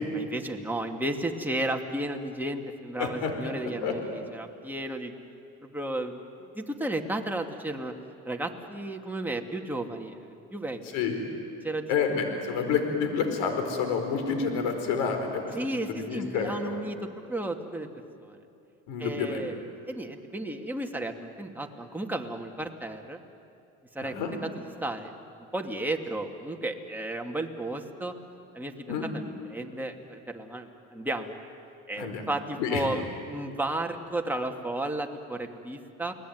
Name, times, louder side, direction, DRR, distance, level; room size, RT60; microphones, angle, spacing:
voice 1, 0.1-5.1 5.7-6.2 6.5-7.9 8.3-10.8 11.6-11.9 15.5-17.0 17.3-17.9 18.2-18.4 19.0-23.2 23.9-24.1 24.4-25.1 25.5-28.1 28.5-31.4 31.9-36.1, right 1 dB, 5° right, 2 dB, 2.6 m, -33 dB
voice 2, 3.0-3.3 3.8-3.9 10.9-11.1 11.9-16.8 18.9-19.4 24.0-24.3 28.9-29.1 32.0-32.2 32.6-32.8, left 6 dB, 80° left, 5 dB, 4.6 m, -29 dB
29.0 x 20.0 x 9.5 m, 2.6 s
supercardioid pair, 85°, 33 cm